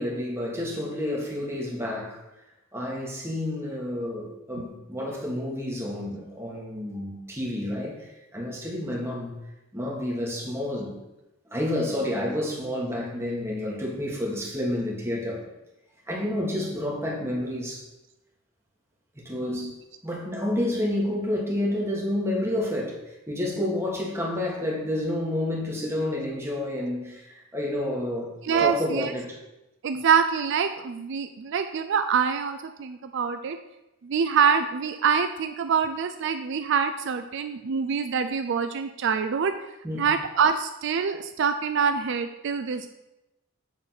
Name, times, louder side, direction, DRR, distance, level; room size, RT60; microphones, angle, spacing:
voice 1, 0.0-2.2 2.7-9.3 9.7-11.0 11.5-15.4 16.1-17.8 19.2-19.7 20.0-28.3 28.6-29.4 39.8-40.1, left 1 dB, 15° right, -3 dB, 1.8 m, -29 dB
voice 2, 19.4-19.7 28.4-29.1 29.8-33.6 34.0-39.5 39.9-42.9, right 6 dB, 65° right, 8 dB, 0.4 m, -25 dB
7.9 x 4.0 x 5.9 m, 0.94 s
head